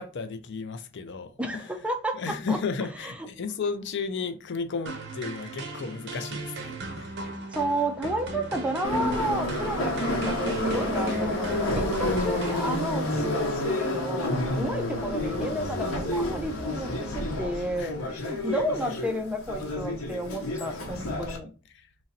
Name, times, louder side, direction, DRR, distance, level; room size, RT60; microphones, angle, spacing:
voice 1, 0.0-1.7 2.1-7.2 13.1-13.3 14.2-14.9 17.8-18.3 18.8-18.9 21.7-21.9, left 4 dB, 60° left, 0.4 m, -34 dB
voice 2, 1.4-2.6 7.5-16.9 17.1-17.9 18.3-21.5, right 1 dB, 5° right, 0.4 m, -31 dB
sound 1, 4.9-13.2, right 2 dB, 55° right, 0.8 m, -38 dB
Subway metro underground, 8.8-21.4, left 1 dB, 90° left, 0.9 m, -29 dB
3.0 x 2.6 x 4.0 m
head